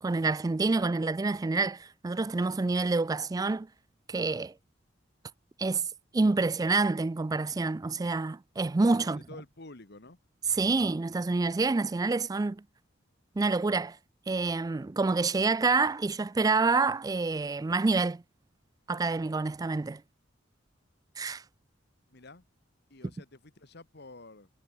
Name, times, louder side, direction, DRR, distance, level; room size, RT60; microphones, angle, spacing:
voice 1, 0.0-3.7 4.1-4.5 5.6-5.9 6.1-9.2 10.5-12.6 13.4-14.0 14.3-18.2 18.9-20.0 21.2-21.4, right 3 dB, 20° right, 0.3 m, -27 dB
voice 2, 9.0-10.2 22.1-22.4 22.9-24.5, left 2 dB, 60° left, 2.0 m, -49 dB
head